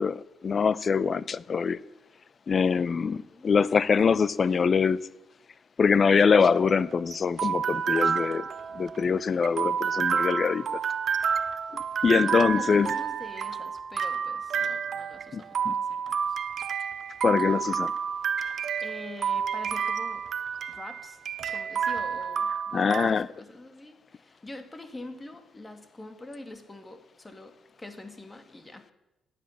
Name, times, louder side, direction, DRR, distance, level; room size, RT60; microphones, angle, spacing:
voice 1, 0.0-1.8 2.5-5.0 5.8-8.4 8.7-10.8 12.0-12.9 15.3-15.7 17.2-17.9 22.7-23.3, left 5 dB, 40° left, 0.7 m, -24 dB
voice 2, 2.9-3.5 12.1-16.4 18.8-20.2 20.7-21.2 21.5-28.9, left 2 dB, 20° left, 2.4 m, -44 dB
sound 1, 6.4-23.1, right 7 dB, 55° right, 1.1 m, -30 dB
17.0 x 10.0 x 7.4 m
cardioid pair, 90°, 0 cm